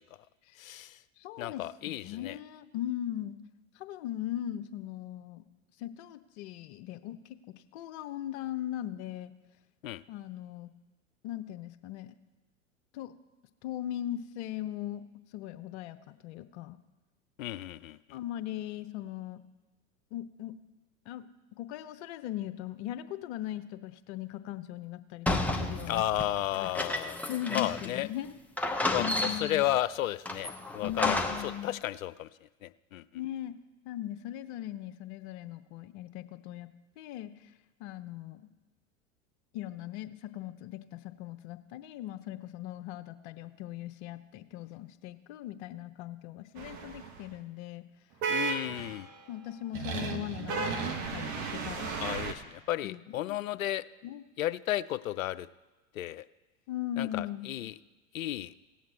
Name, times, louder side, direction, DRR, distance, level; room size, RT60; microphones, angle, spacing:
voice 1, 0.6-0.9 1.4-2.4 9.8-10.0 17.4-18.0 25.9-27.2 27.5-28.1 28.9-29.0 29.4-31.2 31.6-32.3 32.6-33.0 48.3-49.1 52.0-53.8 54.4-55.5 56.0-56.3 57.0-57.7 58.1-58.5, left 13 dB, 80° left, 15 dB, 0.6 m, -33 dB
voice 2, 1.2-3.4 3.8-5.4 5.8-7.4 7.7-9.3 10.1-10.7 11.2-12.1 12.9-13.1 13.6-15.0 15.3-16.8 18.1-19.4 20.1-20.5 21.1-21.2 21.5-26.0 26.5-26.7 27.3-28.3 29.0-29.6 30.8-31.8 33.1-33.6 33.8-36.7 37.0-37.3 37.8-38.5 39.5-47.8 49.3-52.0 52.8-53.4 54.0-54.2 56.7-57.5, left 12 dB, 55° left, 11 dB, 0.9 m, -39 dB
sound 1, 25.3-28.0 28.2-28.3 28.6-29.7 30.3-31.6, left 2 dB, 5° left, 0.8 m, -32 dB
sound 2, 46.6-47.2 48.2-49.2 49.7-52.3, right 5 dB, 45° right, 1.4 m, -34 dB
17.5 x 7.5 x 4.2 m, 1.2 s
hypercardioid pair, 90°, 40 cm